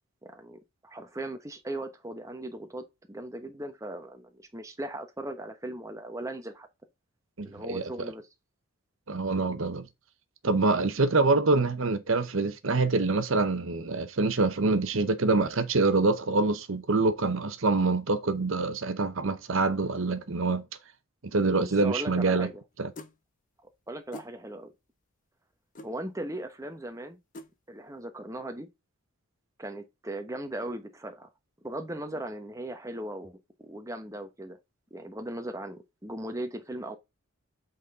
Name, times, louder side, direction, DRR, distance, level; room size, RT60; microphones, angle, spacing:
voice 1, 0.2-6.7 7.4-8.2 21.4-22.6 23.6-24.7 25.8-27.2 27.7-28.7 29.6-31.3 31.6-34.6 34.9-37.0, right 1 dB, 15° right, 1.0 m, -38 dB
voice 2, 7.4-8.1 9.1-9.9 10.4-20.6 21.3-22.5 22.8-22.9, right 3 dB, 65° right, 0.8 m, -25 dB
sound 1, 23.0-23.2 24.1-24.3 25.7-25.9 27.3-27.5, left 1 dB, 35° left, 0.7 m, -43 dB
8.2 x 4.1 x 3.6 m
head